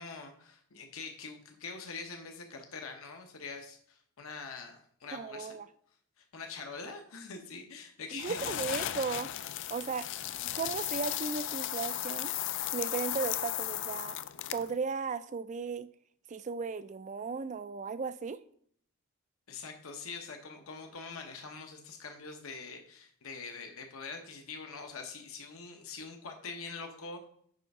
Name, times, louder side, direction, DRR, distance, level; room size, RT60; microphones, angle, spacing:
voice 1, 0.0-5.6 6.2-8.9 19.5-27.2, left 4 dB, 75° left, 4 dB, 1.0 m, -44 dB
voice 2, 5.1-5.7 8.1-9.3 9.7-10.1 10.4-12.3 12.7-14.2 14.5-15.9 16.3-18.4, right 5 dB, 35° right, 14 dB, 0.3 m, -36 dB
sound 1, 8.2-14.8, left 12 dB, 55° left, 0.4 m, -36 dB
9.1 x 3.4 x 5.3 m, 0.63 s
head